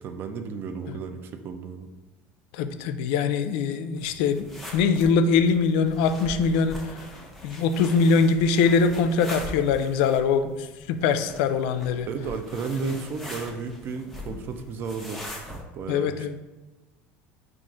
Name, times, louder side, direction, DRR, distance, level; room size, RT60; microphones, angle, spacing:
voice 1, 0.0-1.9 12.1-15.2 15.7-16.3, right 5 dB, 40° right, 7 dB, 0.4 m, -33 dB
voice 2, 2.5-4.5 4.7-6.8 7.4-12.1 12.8-12.9 15.9-16.3, left 5 dB, 80° left, 10 dB, 0.3 m, -22 dB
sound 1, 4.0-15.6, left 1 dB, ahead, 0.7 m, -41 dB
4.6 x 2.4 x 3.7 m, 1.1 s
cardioid pair, 135°, 5 cm